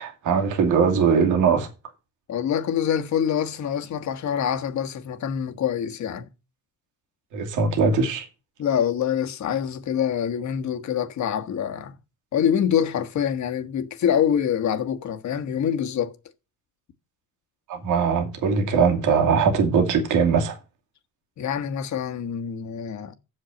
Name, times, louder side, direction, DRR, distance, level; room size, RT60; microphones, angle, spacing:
voice 1, 0.0-1.7 7.3-8.3 17.7-20.6, right 5 dB, 85° right, 2.5 m, -21 dB
voice 2, 2.3-6.3 8.6-11.9 12.3-16.2 21.4-23.2, left 9 dB, 65° left, 1.4 m, -25 dB
7.6 x 6.5 x 7.7 m
cardioid pair, 90°, 30 cm